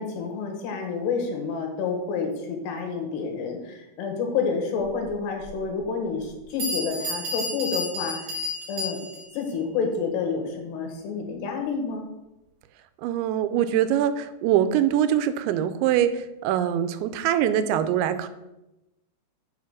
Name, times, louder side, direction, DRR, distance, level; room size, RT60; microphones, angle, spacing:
voice 1, 0.0-8.4 8.7-9.0 9.3-12.1, left 5 dB, 75° left, 3 dB, 3.3 m, -29 dB
Bell, 5.4-5.5 6.2-6.3 6.6-9.4, left 1 dB, 40° right, 3.6 m, -31 dB
voice 2, 13.0-18.3, right 10 dB, 90° right, 12 dB, 2.9 m, -23 dB
7.3 x 5.8 x 6.1 m, 0.95 s
omnidirectional pair, 5.2 m